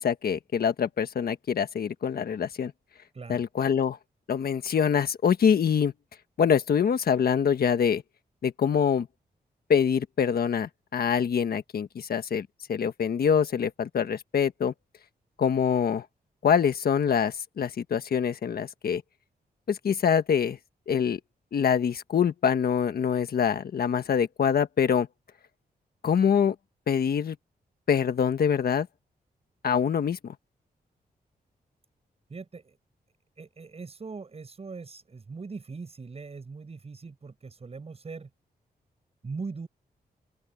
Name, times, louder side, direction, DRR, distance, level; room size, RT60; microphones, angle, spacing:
voice 1, 0.0-2.7 3.3-4.0 4.3-5.9 6.4-8.0 8.4-9.1 9.7-14.7 15.4-16.0 16.4-19.0 19.7-20.6 20.9-21.2 21.5-25.1 26.0-26.5 26.9-27.4 27.9-28.9 29.6-30.3, left 7 dB, 65° left, 1.4 m, -25 dB
voice 2, 3.1-3.5 32.3-32.8 33.4-38.3 39.2-39.7, right 4 dB, 40° right, 7.2 m, -40 dB
open air
wide cardioid pair, 115°, 17 cm